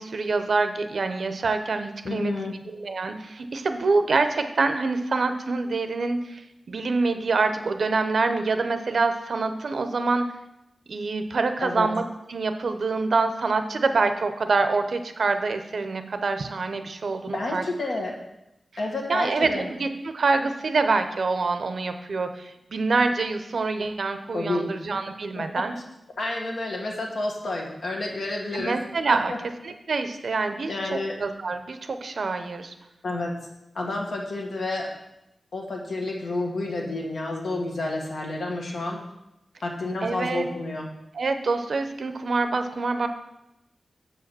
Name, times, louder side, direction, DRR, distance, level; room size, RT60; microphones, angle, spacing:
voice 1, 0.0-2.3 2.7-6.4 6.7-10.3 10.9-12.0 12.3-17.6 19.1-25.8 28.5-29.3 29.6-32.7 40.0-40.5 41.1-43.1, right 3 dB, 60° right, 8 dB, 0.6 m, -26 dB
voice 2, 2.0-2.6 11.6-11.9 17.3-18.1 18.8-19.7 24.3-24.7 25.4-25.6 26.2-28.8 29.1-29.4 30.7-31.2 33.0-33.3 33.7-34.9 35.5-39.0 39.6-40.9, left 2 dB, 70° left, 0 dB, 1.5 m, -30 dB
7.0 x 4.8 x 6.1 m, 0.88 s
wide cardioid pair, 140°, 0 cm